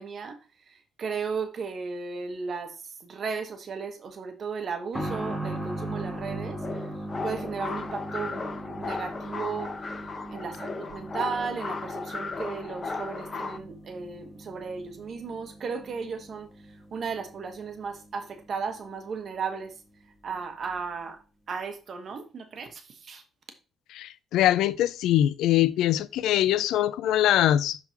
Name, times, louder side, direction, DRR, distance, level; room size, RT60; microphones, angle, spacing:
voice 1, 0.0-6.9 7.2-9.8 10.3-19.8 20.2-23.2, right 5 dB, 50° right, 1.2 m, -35 dB
sound 1, 4.9-19.4 19.6-19.7 20.7-20.8, right 1 dB, 10° left, 1.8 m, -39 dB
sound 2, 6.6-13.6, left 4 dB, 35° left, 0.9 m, -36 dB
voice 2, 23.9-27.8, left 12 dB, 85° left, 0.3 m, -23 dB
11.5 x 3.9 x 2.9 m
cardioid pair, 90°, 0 cm